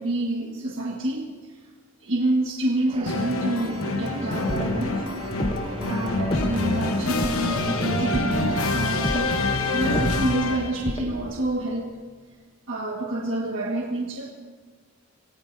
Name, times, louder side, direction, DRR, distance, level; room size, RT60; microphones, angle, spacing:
voice 1, 0.0-1.6 2.0-5.1 5.6-11.9 12.7-14.3, right 1 dB, 60° right, -2 dB, 1.7 m, -28 dB
sound 1, 2.9-10.3, right 2 dB, 25° right, 0.7 m, -36 dB
sound 2, 3.1-10.9, left 3 dB, 75° left, 1.0 m, -27 dB
sound 3, 4.3-11.3, left 1 dB, 25° left, 0.9 m, -33 dB
27.5 x 18.0 x 2.7 m, 1.5 s
head